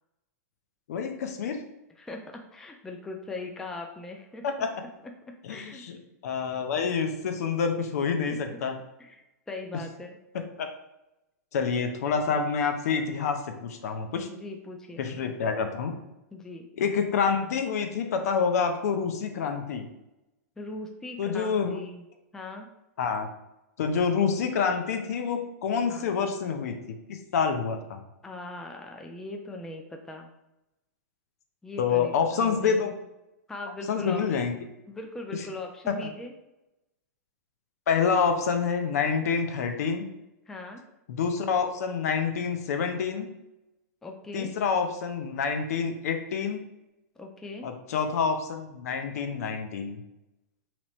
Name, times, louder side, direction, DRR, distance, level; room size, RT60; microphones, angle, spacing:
voice 1, 0.9-1.6 4.4-4.7 5.4-6.0 6.2-8.8 10.6-10.7 11.5-14.3 15.0-15.9 16.8-19.9 21.2-21.8 23.0-23.3 23.8-28.0 31.8-32.9 33.9-34.6 36.0-36.1 37.9-40.0 41.1-43.3 44.3-46.6 47.6-50.0, left 6 dB, 65° left, 6 dB, 0.6 m, -27 dB
voice 2, 2.0-4.4 5.5-5.8 8.5-8.6 9.0-10.2 14.3-15.0 16.3-16.7 20.6-22.0 22.3-22.7 25.9-26.1 28.2-30.3 31.6-32.8 33.5-34.2 34.9-36.3 40.5-40.8 44.0-44.5 47.2-47.7, left 2 dB, 5° left, 3 dB, 0.3 m, -40 dB
3.0 x 2.9 x 4.1 m, 0.92 s
hypercardioid pair, 140°, 9 cm